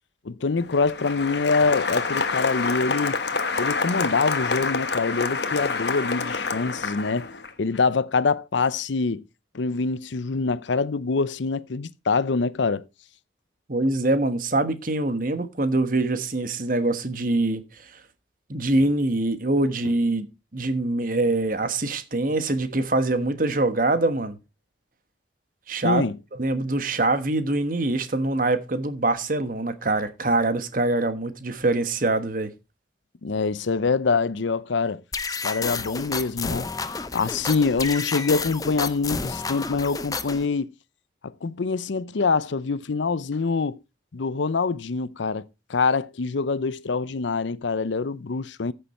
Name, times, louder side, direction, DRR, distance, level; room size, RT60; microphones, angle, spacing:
voice 1, 0.2-3.2 3.6-7.3 7.6-9.2 9.5-12.8 25.8-26.2 33.2-35.0 35.3-36.7 37.1-40.7 41.4-43.8 44.1-48.7, left 4 dB, 80° left, 0.6 m, -25 dB
Applause, 0.6-7.5, left 4 dB, 65° left, 1.2 m, -27 dB
voice 2, 13.7-17.6 18.5-20.3 20.5-24.4 25.7-26.0 26.4-32.5, right 2 dB, 45° right, 1.2 m, -24 dB
sound 1, 35.1-40.4, left 4 dB, 20° left, 0.6 m, -31 dB
14.5 x 6.8 x 4.2 m
head